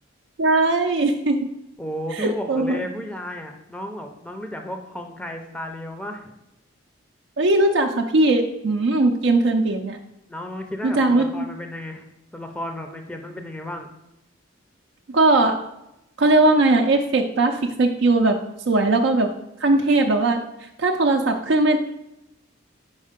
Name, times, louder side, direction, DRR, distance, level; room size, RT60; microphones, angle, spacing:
voice 1, 0.4-1.4 2.1-2.8 7.4-10.0 10.8-11.3 15.1-15.6 16.2-18.4 18.7-19.3 19.6-20.4 20.8-21.8, right 2 dB, 70° right, 3 dB, 0.5 m, -19 dB
voice 2, 1.8-6.3 10.3-12.1 12.3-13.9, equal, 5° left, 5 dB, 0.5 m, -33 dB
5.5 x 4.4 x 5.0 m, 0.87 s
head